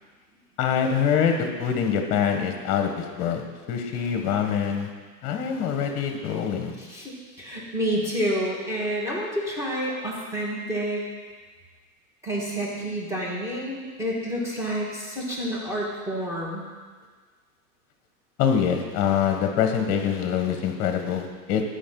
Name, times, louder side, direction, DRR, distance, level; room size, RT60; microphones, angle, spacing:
voice 1, 0.6-4.9 5.2-6.7 18.4-21.6, left 7 dB, 35° left, 4 dB, 1.3 m, -24 dB
voice 2, 6.8-11.1 12.2-16.6, equal, 5° right, -4 dB, 1.7 m, -29 dB
12.5 x 5.4 x 3.9 m, 1.5 s
hypercardioid pair, 140°, 44 cm